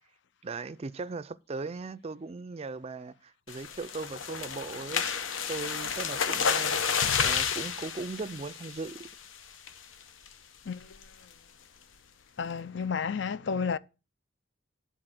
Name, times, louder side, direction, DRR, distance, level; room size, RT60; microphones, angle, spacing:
voice 1, 0.4-5.0 5.5-6.8 7.2-9.1, right 3 dB, 30° right, 0.4 m, -38 dB
sound 1, 3.5-9.2 9.7-9.9 10.3-10.4 10.7-11.0, left 6 dB, 90° left, 0.9 m, -30 dB
voice 2, 10.6-11.0 12.4-13.8, left 6 dB, 65° left, 0.5 m, -31 dB
11.0 x 4.2 x 7.6 m
head